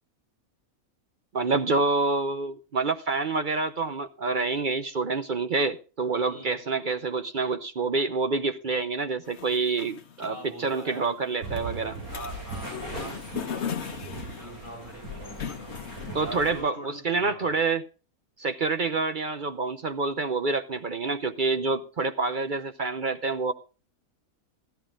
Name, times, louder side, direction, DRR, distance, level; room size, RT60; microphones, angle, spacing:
voice 1, 1.3-12.0 12.9-13.1 16.1-17.8 18.4-23.5, right 4 dB, 45° right, 0.7 m, -27 dB
sound 1, 9.3-16.5, left 7 dB, 50° left, 1.3 m, -39 dB
voice 2, 10.3-11.2 12.1-15.8 16.1-17.5, right 1 dB, 65° right, 4.5 m, -43 dB
sound 2, 11.4-16.6, right 2 dB, 85° right, 8.8 m, -39 dB
16.0 x 13.0 x 2.4 m
omnidirectional pair, 1.5 m